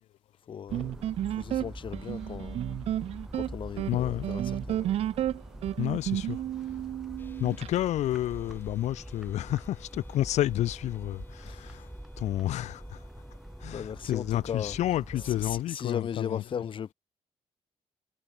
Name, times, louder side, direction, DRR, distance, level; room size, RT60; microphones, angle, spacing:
voice 1, 0.5-2.6 3.3-5.0 11.4-11.8 13.7-14.8 15.2-16.9, left 8 dB, 50° left, 1.2 m, -37 dB
sound 1, 0.7-15.6, right 1 dB, 5° right, 7.5 m, -44 dB
sound 2, 0.7-7.7, right 12 dB, 65° right, 0.4 m, -32 dB
voice 2, 3.9-4.3 5.8-6.4 7.4-11.9 12.2-13.0 13.6-16.6, left 13 dB, 90° left, 2.2 m, -30 dB
sound 3, 7.2-13.9, left 3 dB, 20° left, 7.3 m, -58 dB
cardioid pair, 115°, 11 cm